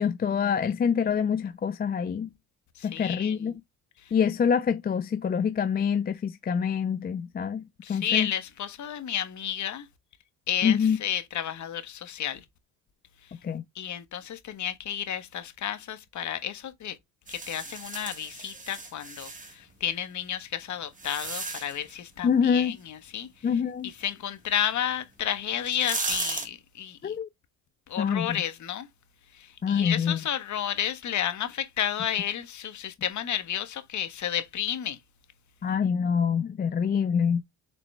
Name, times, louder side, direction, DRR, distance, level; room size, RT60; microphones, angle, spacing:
voice 1, 0.0-2.3 2.8-3.5 4.1-7.6 7.9-8.3 10.6-11.0 13.4-13.6 22.2-22.8 23.4-23.9 27.0-27.3 28.0-28.4 29.6-30.2 35.6-37.4, left 7 dB, 25° left, 0.5 m, -25 dB
voice 2, 2.8-3.3 7.8-9.9 10.5-12.4 13.7-16.9 17.3-23.3 23.8-27.1 27.9-28.9 29.7-35.0, left 10 dB, 50° left, 1.5 m, -31 dB
sound 1, 17.3-19.5 20.3-21.9 24.9-25.0 25.5-26.5, right 3 dB, 20° right, 1.9 m, -35 dB
7.2 x 4.1 x 3.4 m
cardioid pair, 100°, 36 cm